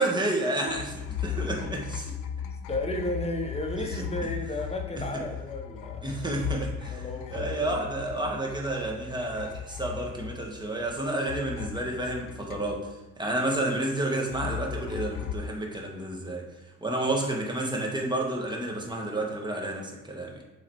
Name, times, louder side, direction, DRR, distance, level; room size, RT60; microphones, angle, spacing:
voice 1, 0.0-2.1 3.8-4.0 6.0-12.9 13.2-16.4 16.8-20.4, right 1 dB, 15° right, 0 dB, 1.7 m, -30 dB
sound 1, 0.7-11.0 11.3-13.1 14.3-15.3, left 8 dB, 85° left, 0.7 m, -37 dB
voice 2, 2.3-6.4 6.9-7.7 17.0-17.2, left 1 dB, 20° left, 3 dB, 1.2 m, -34 dB
7.5 x 4.0 x 4.7 m, 1.1 s
cardioid pair, 90°, 30 cm